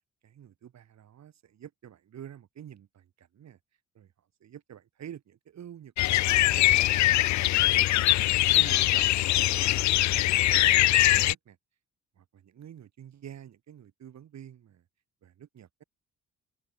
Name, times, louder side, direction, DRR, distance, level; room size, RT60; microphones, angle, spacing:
voice 1, 0.2-3.6 3.9-4.1 4.4-7.5 7.8-9.2 9.5-9.9 10.1-10.2 10.5-11.6 12.2-14.8 15.2-15.8, right 9 dB, 60° right, 4.8 m, -48 dB
sound 1, 6.0-11.3, left 16 dB, 70° left, 0.5 m, -22 dB
open air
cardioid pair, 90°, 30 cm